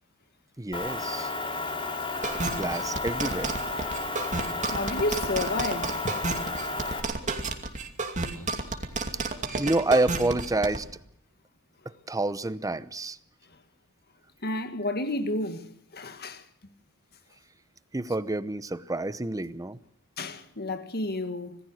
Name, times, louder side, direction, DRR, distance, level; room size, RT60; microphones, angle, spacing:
voice 1, 0.6-1.3 2.4-3.5 4.7-4.9 9.1-9.2 9.6-10.9 11.8-13.2 17.9-19.8, right 2 dB, 15° right, 0.8 m, -28 dB
Motor vehicle (road) / Engine, 0.7-7.0, left 3 dB, 25° left, 3.4 m, -32 dB
sound 1, 2.2-10.8, right 3 dB, 35° right, 2.6 m, -31 dB
voice 2, 4.7-6.1 14.4-16.4 20.2-21.6, left 2 dB, 45° left, 1.9 m, -31 dB
26.5 x 19.0 x 6.4 m
head